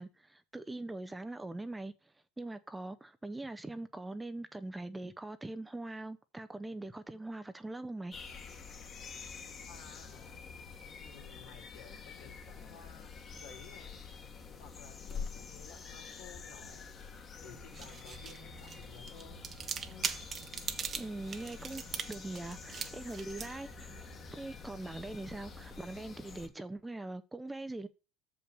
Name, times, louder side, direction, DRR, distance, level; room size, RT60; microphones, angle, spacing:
voice 1, 0.0-8.1 21.0-21.8 22.1-27.9, right 2 dB, 10° right, 0.6 m, -42 dB
sound 1, 8.1-26.5, left 5 dB, 35° left, 1.5 m, -47 dB
voice 2, 9.6-10.4 11.0-13.1 13.4-14.0 14.6-16.8 17.4-19.4, left 6 dB, 80° left, 2.7 m, -55 dB
sound 2, 17.5-25.9, right 6 dB, 30° right, 0.9 m, -43 dB
6.7 x 5.5 x 6.7 m
supercardioid pair, 115°, 0 cm